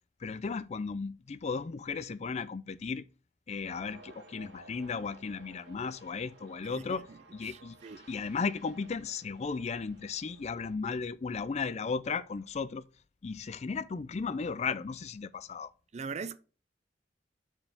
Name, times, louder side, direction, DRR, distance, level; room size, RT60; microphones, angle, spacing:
voice 1, 0.2-3.0 3.5-7.1 7.3-7.8 8.1-12.8 13.2-15.7, left 5 dB, 40° left, 0.4 m, -35 dB
sound 1, 3.6-10.8, right 2 dB, 80° right, 1.1 m, -56 dB
voice 2, 6.7-8.1 15.9-16.4, right 5 dB, 40° right, 0.5 m, -42 dB
5.4 x 4.5 x 5.8 m
head